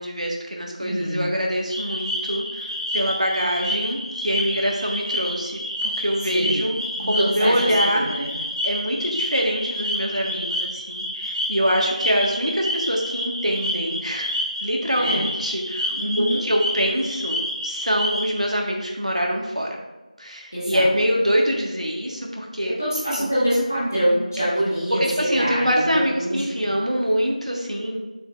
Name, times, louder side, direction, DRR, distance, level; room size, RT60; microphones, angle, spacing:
voice 1, 0.0-8.1 8.6-14.3 14.6-19.7 20.2-22.7 23.1-23.3 25.0-28.0, equal, 60° right, -1 dB, 1.5 m, -24 dB
voice 2, 0.8-1.3 6.3-6.6 7.0-8.3 15.0-15.2 15.9-16.4 20.5-20.8 22.6-26.7, equal, 20° left, -10 dB, 1.5 m, -25 dB
sound 1, 1.7-18.5, equal, 40° right, 1.3 m, -29 dB
7.6 x 6.8 x 2.5 m, 1.1 s
figure-of-eight pair, 180°, 4 cm